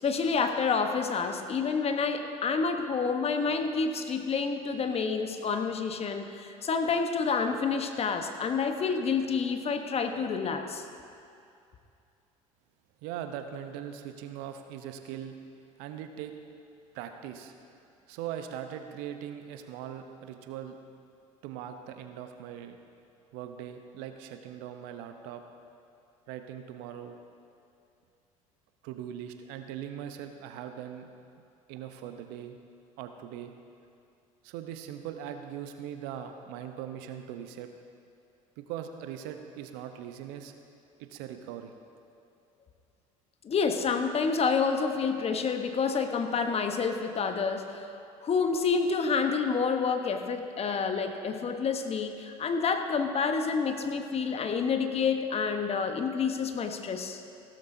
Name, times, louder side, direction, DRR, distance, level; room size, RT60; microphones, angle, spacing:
voice 1, 0.0-10.8 43.4-47.9 48.2-57.2, left 5 dB, 35° left, 6 dB, 1.1 m, -28 dB
voice 2, 13.0-15.4 15.8-16.3 16.9-17.5 18.1-20.8 21.4-22.8 23.3-25.4 26.3-27.1 28.8-31.1 31.7-32.6 33.0-33.5 34.4-37.7 38.6-40.5 41.0-41.7, right 10 dB, 65° right, 7 dB, 0.9 m, -40 dB
16.0 x 13.0 x 2.7 m, 2.5 s
hypercardioid pair, 65°, 18 cm